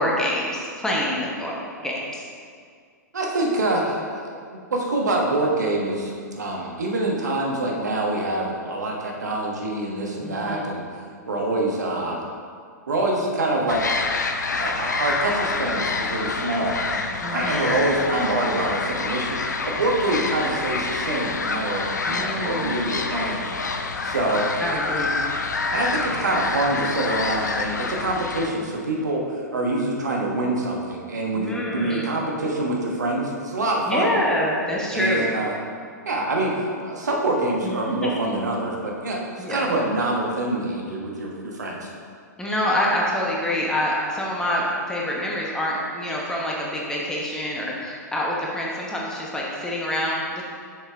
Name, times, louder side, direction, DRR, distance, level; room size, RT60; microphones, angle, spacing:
voice 1, 0.0-1.5 1.8-2.2 10.2-10.7 17.2-17.7 22.1-22.8 24.6-25.1 31.3-32.1 33.8-35.3 37.6-38.1 39.4-39.7 42.4-50.4, left 1 dB, 5° left, -4 dB, 1.1 m, -26 dB
voice 2, 3.1-10.8 11.3-12.2 12.9-14.0 14.6-17.0 17.3-23.6 24.0-24.4 25.7-34.1 34.9-35.5 36.0-41.9, right 2 dB, 70° right, -1 dB, 1.2 m, -25 dB
sound 1, 13.7-28.5, left 4 dB, 75° left, 0.5 m, -27 dB
6.7 x 5.8 x 3.5 m, 2.1 s
figure-of-eight pair, 105°, 10 cm